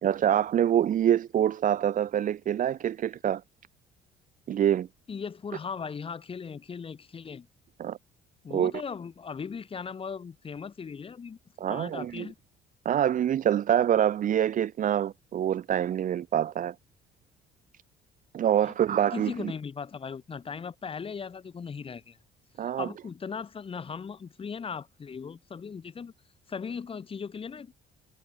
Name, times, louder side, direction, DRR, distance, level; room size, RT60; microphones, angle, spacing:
voice 1, 0.0-3.4 4.5-4.9 7.8-8.0 8.5-8.7 11.6-12.3 12.8-16.7 18.3-19.5 22.6-22.9, right 10 dB, 50° right, 1.4 m, -25 dB
voice 2, 5.1-7.5 8.4-11.4 11.7-12.4 18.6-22.2 22.6-26.1 26.5-27.8, left 6 dB, 35° left, 4.0 m, -38 dB
cardioid pair, 110°, 17 cm